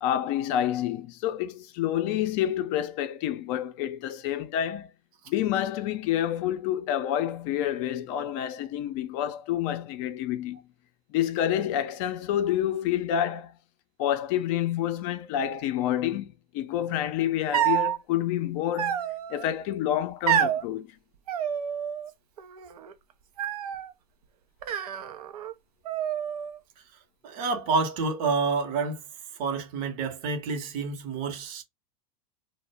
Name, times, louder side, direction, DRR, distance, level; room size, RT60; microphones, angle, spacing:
voice 1, 0.0-4.9 5.3-10.6 11.1-13.5 14.0-19.0 19.3-20.9, left 11 dB, 50° left, 0.4 m, -28 dB
sound 1, 17.5-18.0 18.8-19.4 20.3-20.6 21.3-22.1 22.4-22.9 23.4-23.9 24.6-25.5 25.8-26.6, right 10 dB, 80° right, 0.5 m, -28 dB
voice 2, 27.2-29.0 29.4-31.6, right 4 dB, 50° right, 0.8 m, -28 dB
2.1 x 2.0 x 3.2 m
hypercardioid pair, 90°, 19 cm